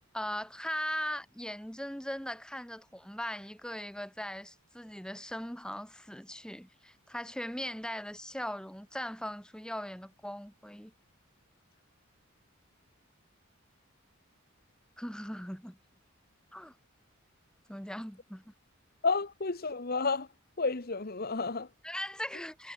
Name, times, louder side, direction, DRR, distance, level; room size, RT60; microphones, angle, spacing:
voice 1, 0.1-10.9 15.0-15.8 16.5-16.7 17.7-18.5 21.8-22.7, equal, 5° left, 6.5 m, -39 dB
voice 2, 19.0-20.3 20.6-21.7, left 4 dB, 45° left, 1.1 m, -31 dB
head